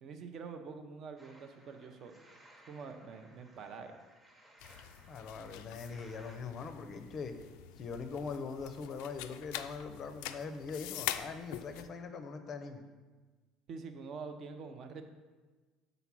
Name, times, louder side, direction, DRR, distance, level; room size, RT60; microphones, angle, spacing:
voice 1, 0.0-2.1 2.7-3.9 13.7-15.0, right 5 dB, 40° right, 7 dB, 0.6 m, -46 dB
sound 1, 1.2-6.4, right 1 dB, 10° right, 0.9 m, -61 dB
sound 2, 4.6-11.9, left 12 dB, 80° left, 0.3 m, -44 dB
voice 2, 5.1-7.3 7.8-12.8, left 5 dB, 30° left, 7 dB, 0.6 m, -42 dB
7.0 x 4.0 x 6.0 m, 1.3 s
cardioid pair, 165°, 0 cm